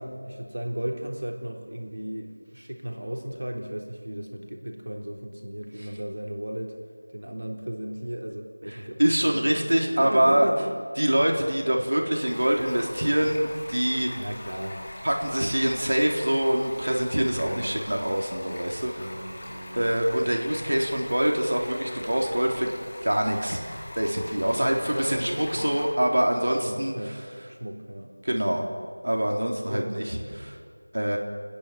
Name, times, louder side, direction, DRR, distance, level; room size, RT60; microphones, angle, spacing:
voice 1, 0.0-6.7 7.1-9.4 9.8-10.7 14.2-14.9 17.4-17.9 18.9-19.8 24.6-25.7 26.4-27.2 27.5-28.1 28.5-28.7 29.7-30.0, right 1 dB, 85° right, 2 dB, 3.7 m, -35 dB
voice 2, 9.0-10.5 11.0-14.1 15.0-19.0 19.8-22.7 23.0-23.6 23.9-26.9 28.2-28.6 29.0-30.6 30.9-31.2, right 1 dB, 65° right, 1 dB, 3.9 m, -24 dB
Stream, 12.2-25.8, left 1 dB, 15° left, 2.6 m, -42 dB
28.0 x 20.0 x 7.7 m, 2.2 s
figure-of-eight pair, 180°, 0 cm